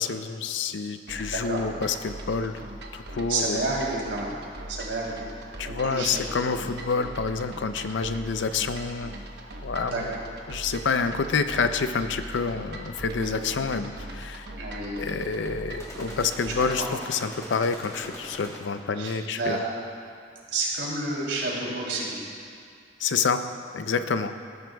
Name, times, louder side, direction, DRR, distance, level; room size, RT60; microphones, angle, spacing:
voice 1, 0.0-2.6 2.9-3.6 5.6-9.2 9.6-10.1 10.5-14.5 15.0-19.6 23.0-23.4 23.7-24.3, left 5 dB, 80° left, 10 dB, 0.5 m, -28 dB
sound 1, 1.1-16.9, right 1 dB, 65° right, 1.0 m, -40 dB
voice 2, 1.3-1.6 3.3-4.3 4.7-5.2 5.6-6.2 9.9-10.0 13.1-13.3 14.6-15.0 16.6-16.9 19.0-19.6 20.5-22.1, right 2 dB, 90° right, -5 dB, 3.1 m, -30 dB
sound 2, 15.8-18.9, left 1 dB, 15° left, 1.3 m, -42 dB
18.5 x 11.0 x 2.3 m, 2.3 s
head